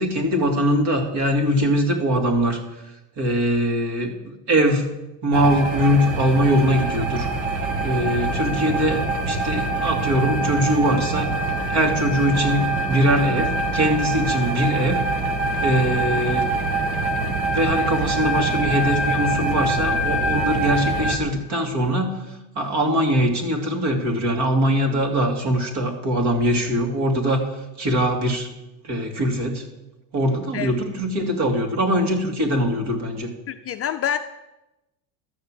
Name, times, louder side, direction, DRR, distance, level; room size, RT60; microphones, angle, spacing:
voice 1, 0.0-2.6 3.2-4.9 5.2-7.3 7.8-9.0 9.3-11.4 11.7-15.0 15.6-16.5 17.4-22.1 22.6-27.4 27.8-28.5 28.8-29.6 30.1-33.3, equal, 50° right, 3 dB, 2.9 m, -22 dB
sound 1, 5.3-21.2, right 2 dB, 70° right, 2.1 m, -24 dB
voice 2, 33.5-34.2, left 10 dB, 30° left, 6 dB, 0.4 m, -26 dB
12.5 x 6.7 x 7.7 m, 0.95 s
supercardioid pair, 120°, 50 cm